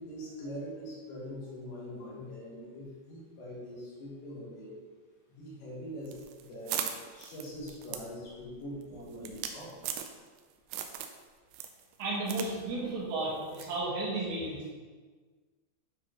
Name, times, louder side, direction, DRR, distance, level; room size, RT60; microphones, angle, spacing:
voice 1, 0.0-4.7 5.3-6.8 7.1-9.7, equal, 80° left, -6 dB, 4.4 m, -43 dB
sound 1, 6.1-10.4 10.7-11.2 11.5-12.5 12.8-12.9 13.6-13.8, right 9 dB, 85° right, 2.7 m, -38 dB
voice 2, 8.9-9.3 12.0-14.7, right 2 dB, 65° right, -6 dB, 3.5 m, -34 dB
10.0 x 4.8 x 3.1 m, 1.4 s
omnidirectional pair, 5.7 m